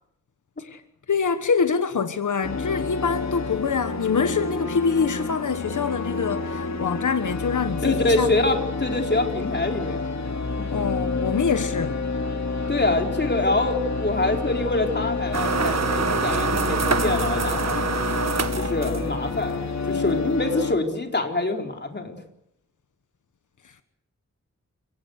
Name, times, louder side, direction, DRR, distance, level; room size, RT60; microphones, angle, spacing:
voice 1, 1.1-8.3 10.7-12.0 23.6-23.7, left 5 dB, 90° left, 1.3 m, -25 dB
sound 1, 2.4-20.8, left 3 dB, 65° left, 2.9 m, -29 dB
voice 2, 7.8-10.2 12.7-17.9 18.6-22.2, left 2 dB, 35° left, 4.3 m, -25 dB
sound 2, 15.3-19.3, right 5 dB, 60° right, 1.7 m, -26 dB
29.5 x 17.5 x 8.1 m
wide cardioid pair, 90°, 29 cm